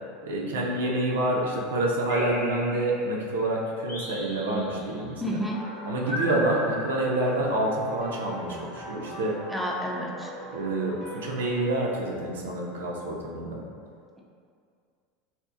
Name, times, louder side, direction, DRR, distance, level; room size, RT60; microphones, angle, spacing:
voice 1, 0.2-5.4 5.9-9.4 10.5-13.6, right 1 dB, 75° right, -2 dB, 0.3 m, -27 dB
sound 1, 2.1-3.2 3.9-5.0 6.1-7.6, equal, 85° left, 0.6 m, -36 dB
voice 2, 5.2-5.6 6.1-6.4 9.5-10.3, equal, ahead, -3 dB, 0.4 m, -31 dB
sound 2, 5.5-11.7, right 1 dB, 30° left, 0.7 m, -41 dB
2.6 x 2.0 x 2.3 m, 2.3 s
hypercardioid pair, 80°, 0 cm